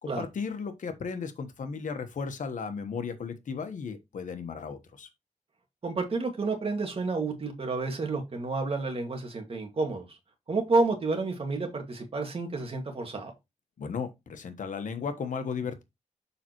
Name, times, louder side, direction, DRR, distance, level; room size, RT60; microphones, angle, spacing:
voice 1, 0.0-5.1 13.8-15.8, left 5 dB, 80° left, 1.2 m, -35 dB
voice 2, 5.8-10.0 10.5-13.3, right 3 dB, 45° right, 2.1 m, -30 dB
7.0 x 5.5 x 3.1 m
wide cardioid pair, 115°, 13 cm